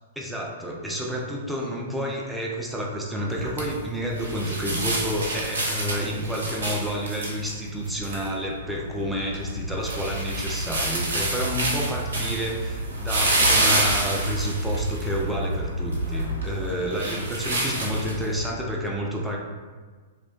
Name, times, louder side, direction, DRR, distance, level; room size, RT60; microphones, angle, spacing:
voice 1, 0.2-19.4, equal, 5° right, -2 dB, 0.3 m, -30 dB
sound 1, 3.3-18.5, right 1 dB, 65° right, 0.5 m, -28 dB
2.6 x 2.1 x 2.3 m, 1.5 s
figure-of-eight pair, 105°, 0 cm